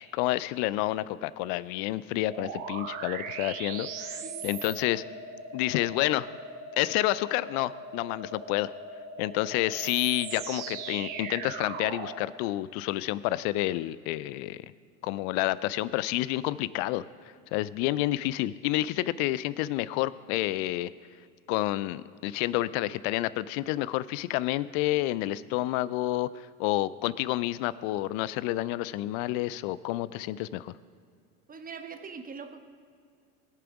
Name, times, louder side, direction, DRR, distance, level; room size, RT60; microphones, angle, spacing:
voice 1, 0.0-5.0 5.5-6.3 6.8-8.7 9.2-14.7 15.0-17.0 17.5-20.9 21.5-30.7, left 16 dB, 50° left, 18 dB, 0.5 m, -29 dB
sound 1, 2.3-12.2, right 4 dB, 70° right, 1.2 m, -39 dB
voice 2, 4.2-4.6 31.5-32.6, right 5 dB, 20° right, 8 dB, 1.1 m, -42 dB
20.5 x 6.9 x 4.9 m, 2.2 s
hypercardioid pair, 80°, 44 cm